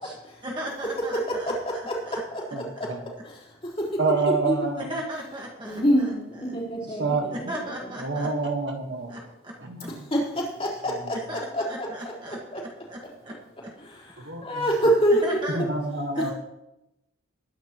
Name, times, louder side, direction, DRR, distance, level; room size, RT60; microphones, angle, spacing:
voice 1, 0.4-1.8 2.0-2.2 4.9-6.6 6.9-7.0 7.5-8.3 9.1-9.5 9.8-9.9 11.3-12.4 12.6-13.4 13.6-13.7 15.2-15.6 16.1-16.3, equal, 20° right, -1 dB, 1.7 m, -37 dB
voice 2, 1.1-2.0 2.6-2.7 4.4-4.9 5.6-7.6 10.1-11.9 14.4-15.5 16.2-16.3, equal, 30° left, -5 dB, 4.0 m, -25 dB
voice 3, 2.5-3.0 4.0-4.9 7.0-7.3 8.0-9.2 9.6-10.1 10.9-11.2 14.3-14.4 15.5-16.3, right 3 dB, 55° right, 3 dB, 1.5 m, -27 dB
21.0 x 10.0 x 3.1 m, 0.91 s
head